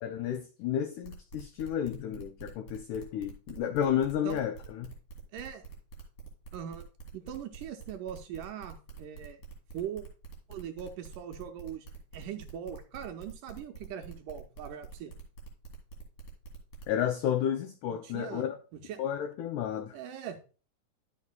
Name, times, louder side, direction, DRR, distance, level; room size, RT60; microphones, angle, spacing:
voice 1, 0.0-4.9 16.9-18.6 19.0-20.0, left 9 dB, 85° left, 1.7 m, -32 dB
sound 1, 1.0-17.0, right 5 dB, 60° left, 3.4 m, -46 dB
voice 2, 5.3-5.6 6.5-6.8 7.1-9.4 9.7-10.0 10.5-11.9 12.1-15.1 17.9-19.0 19.9-20.4, right 9 dB, 80° right, 2.0 m, -41 dB
11.5 x 6.5 x 2.2 m
omnidirectional pair, 4.1 m